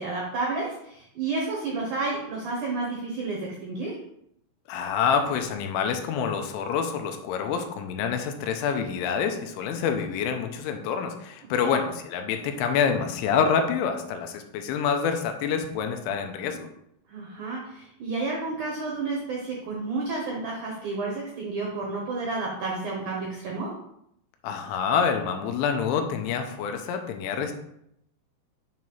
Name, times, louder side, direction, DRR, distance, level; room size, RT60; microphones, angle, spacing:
voice 1, 0.0-4.0 11.6-11.7 16.5-16.6 17.1-23.7, right 3 dB, 90° right, -3 dB, 1.7 m, -31 dB
voice 2, 4.7-16.6 24.4-27.5, left 6 dB, 90° left, 5 dB, 3.0 m, -27 dB
7.6 x 3.1 x 5.4 m, 0.77 s
omnidirectional pair, 5.3 m